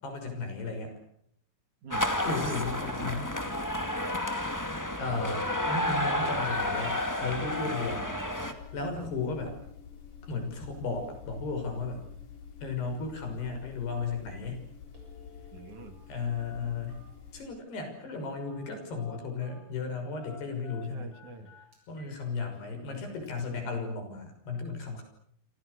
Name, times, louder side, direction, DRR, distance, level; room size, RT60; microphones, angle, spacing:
voice 1, 0.0-1.0 2.2-3.3 5.0-8.1 8.7-9.5 10.3-12.1 12.6-14.6 16.1-17.0 17.3-21.1 21.9-25.0, left 4 dB, 85° left, 5 dB, 8.2 m, -35 dB
voice 2, 1.8-2.2 9.0-9.1 15.5-16.0 20.9-21.5 22.7-23.0, right 3 dB, 50° right, 7 dB, 3.7 m, -45 dB
sound 1, 1.9-8.5, left 1 dB, 10° left, 1.2 m, -31 dB
sound 2, 8.4-17.5, left 7 dB, 60° left, 5.2 m, -48 dB
Telephone, 14.3-14.5 14.8-16.1 16.4-17.3 18.5-18.7 19.0-19.7 20.2-22.2 22.5-22.6 23.3-23.4, left 7 dB, 30° right, 7.9 m, -53 dB
28.5 x 27.0 x 6.8 m, 0.69 s
omnidirectional pair, 4.6 m